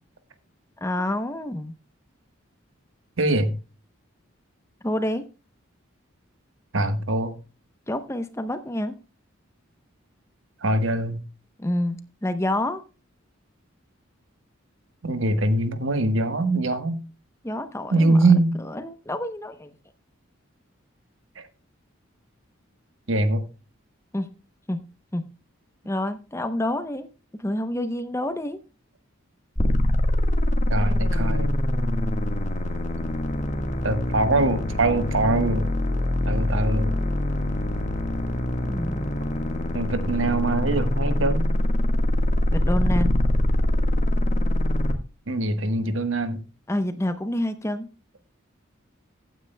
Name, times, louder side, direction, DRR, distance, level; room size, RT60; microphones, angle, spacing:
voice 1, 0.8-1.7 4.8-5.3 7.9-9.0 11.6-12.8 17.4-18.2 18.7-19.7 24.1-24.3 24.7-24.8 25.1-25.3 25.8-28.6 38.6-39.1 42.5-43.1 46.7-47.9, left 1 dB, 15° left, 0.7 m, -28 dB
voice 2, 3.2-3.6 6.7-7.4 10.6-11.2 15.0-17.0 17.9-18.6 21.3-21.4 23.1-23.4 30.7-31.6 33.8-35.7 36.3-37.0 39.7-41.5 45.3-46.4, right 2 dB, 70° right, 1.3 m, -23 dB
sound 1, 29.6-44.9, left 1 dB, 35° left, 1.5 m, -24 dB
15.5 x 9.4 x 2.2 m
head